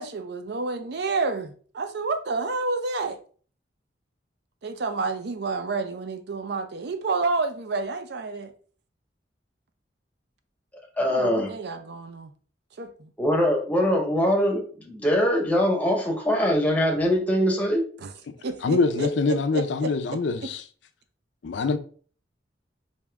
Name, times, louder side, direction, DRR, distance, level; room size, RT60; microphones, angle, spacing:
voice 1, 0.0-3.2 4.6-8.5 11.0-12.3 12.8-13.1 18.0-18.1 18.4-20.2, right 3 dB, 65° right, 0.5 m, -30 dB
voice 2, 11.0-11.5 13.2-17.8, equal, 10° left, 0.8 m, -22 dB
voice 3, 18.6-20.6 21.4-21.8, left 4 dB, 75° left, 0.4 m, -24 dB
3.5 x 2.6 x 3.3 m
head